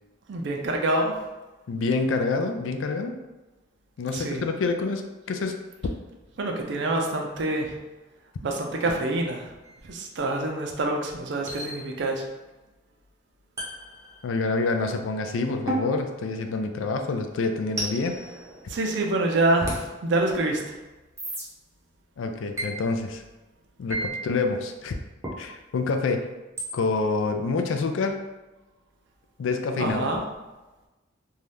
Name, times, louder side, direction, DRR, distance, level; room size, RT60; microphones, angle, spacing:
voice 1, 0.3-1.2 4.1-4.4 6.4-7.8 8.4-9.5 9.8-12.2 18.7-20.8 29.8-30.2, right 2 dB, 65° right, 1 dB, 0.5 m, -26 dB
voice 2, 1.7-3.2 4.0-5.6 14.2-18.2 22.2-23.2 23.8-25.0 25.4-26.3 26.7-28.2 29.4-30.1, left 3 dB, 80° left, 6 dB, 0.4 m, -27 dB
sound 1, 9.6-9.8 11.5-12.2 13.6-14.6 15.7-17.0 17.8-19.1 19.7-19.9 21.2-21.4 22.6-22.7 23.9-24.1 25.2-25.4 26.6-26.7, right 1 dB, 15° right, 0.6 m, -34 dB
2.7 x 2.3 x 3.3 m, 1.1 s
head